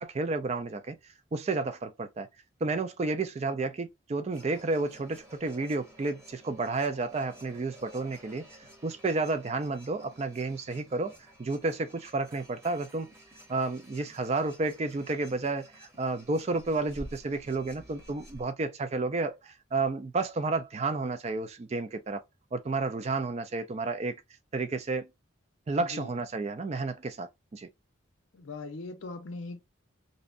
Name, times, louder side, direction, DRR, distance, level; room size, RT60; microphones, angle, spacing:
voice 1, 0.0-1.0 1.3-2.3 2.6-13.1 13.5-22.2 22.5-24.2 24.5-25.1 25.7-27.7, right 3 dB, 35° right, 0.3 m, -31 dB
sound 1, 4.3-18.4, equal, 10° right, 0.8 m, -52 dB
voice 2, 25.7-26.1 28.3-29.6, left 3 dB, 75° left, 0.5 m, -40 dB
2.7 x 2.1 x 2.4 m
head